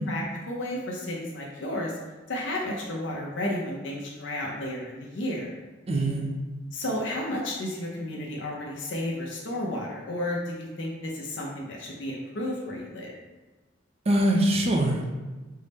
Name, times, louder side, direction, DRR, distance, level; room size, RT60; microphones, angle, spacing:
voice 1, 0.0-1.9 2.3-5.5 6.7-13.1, left 1 dB, 60° left, -2 dB, 0.6 m, -32 dB
voice 2, 5.9-6.3 14.1-15.1, right 1 dB, 30° right, 1 dB, 0.5 m, -23 dB
5.4 x 2.1 x 3.3 m, 1.3 s
head